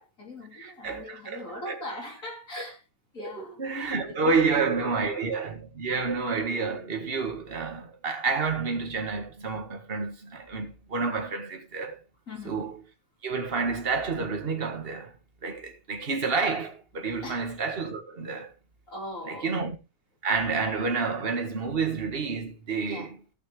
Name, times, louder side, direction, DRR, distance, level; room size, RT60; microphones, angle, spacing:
voice 1, 0.0-2.8 3.1-5.1 6.0-6.2 12.3-12.6 17.2-17.4 18.9-19.6 22.9-23.1, left 1 dB, 50° left, 3.7 m, -41 dB
voice 2, 0.6-1.8 2.5-2.6 3.2-12.0 12.5-12.7 13.2-15.1 15.4-18.5 19.3-19.8 20.2-23.2, right 4 dB, 35° right, 1.9 m, -29 dB
15.5 x 6.4 x 3.3 m
omnidirectional pair, 1.8 m